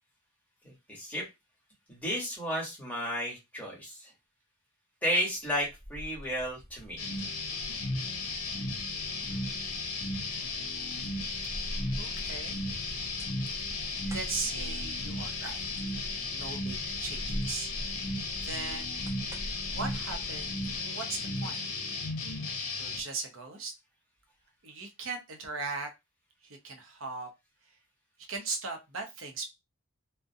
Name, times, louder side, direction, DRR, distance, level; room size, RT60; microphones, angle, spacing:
voice 1, 0.6-1.2 1.9-4.1 5.0-7.0, equal, 5° left, -4 dB, 1.0 m, -33 dB
sound 1, 5.4-20.8, equal, 15° right, 0.5 m, -44 dB
sound 2, 7.0-23.0, left 3 dB, 75° left, 0.6 m, -35 dB
voice 2, 9.3-9.6 12.0-12.6 13.8-15.6 16.3-17.7 18.4-19.2 19.7-21.6 22.7-23.7 24.6-25.9 26.6-27.3 28.3-29.4, right 4 dB, 65° right, 4 dB, 0.7 m, -38 dB
2.4 x 2.1 x 2.6 m, 0.22 s
head